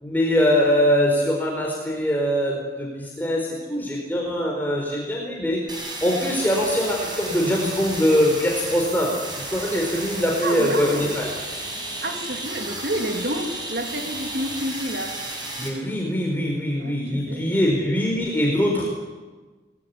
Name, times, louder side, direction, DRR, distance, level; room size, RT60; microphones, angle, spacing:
voice 1, 0.0-5.7 6.0-11.3 15.6-18.9, equal, 10° left, -2 dB, 4.6 m, -22 dB
sound 1, 5.7-15.7, right 2 dB, 25° right, 7.5 m, -33 dB
voice 2, 10.4-11.0 12.0-15.2 16.8-17.5, right 1 dB, 65° right, 2 dB, 3.2 m, -29 dB
29.5 x 20.5 x 9.8 m, 1.3 s
head